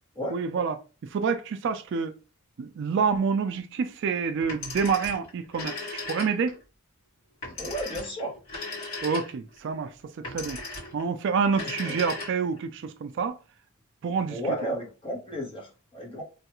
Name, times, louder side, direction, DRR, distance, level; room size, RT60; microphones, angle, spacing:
voice 1, 0.3-2.1 2.6-5.8 6.1-6.6 9.0-10.6 10.9-13.4 14.0-14.6, right 5 dB, 55° right, 0.3 m, -28 dB
Telephone, 4.4-6.6 7.4-9.6 10.2-11.0 11.5-12.6, left 3 dB, 75° left, 1.8 m, -37 dB
voice 2, 7.6-8.3 11.9-12.0 14.3-16.2, equal, 25° left, 0.9 m, -33 dB
3.2 x 2.3 x 2.9 m
head